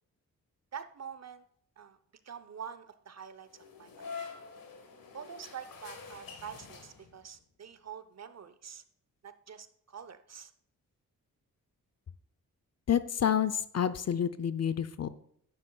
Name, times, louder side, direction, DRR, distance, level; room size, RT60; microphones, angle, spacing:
voice 1, 0.7-1.4 1.8-2.0 2.2-3.5 3.8-4.1 5.1-8.8 9.2-10.5, right 7 dB, 50° right, 12 dB, 0.8 m, -46 dB
sound 1, 3.5-7.4, left 5 dB, 75° left, 1.5 m, -46 dB
voice 2, 12.9-15.1, left 9 dB, 45° left, 14 dB, 0.6 m, -29 dB
11.5 x 9.5 x 2.3 m, 0.68 s
cardioid pair, 55°, 35 cm